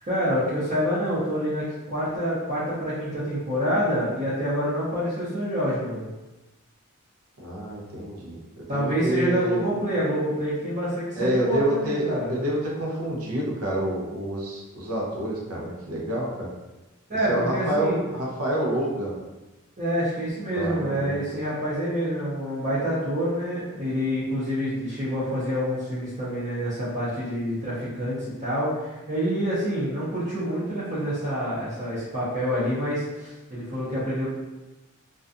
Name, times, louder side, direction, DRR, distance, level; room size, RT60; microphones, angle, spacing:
voice 1, 0.0-6.1 8.7-12.3 17.1-18.1 19.8-34.3, equal, 35° right, -11 dB, 0.6 m, -27 dB
voice 2, 7.4-9.7 11.1-16.5 17.3-19.2 20.5-21.4, right 1 dB, 85° right, -3 dB, 0.7 m, -28 dB
2.4 x 2.2 x 2.5 m, 1.1 s
head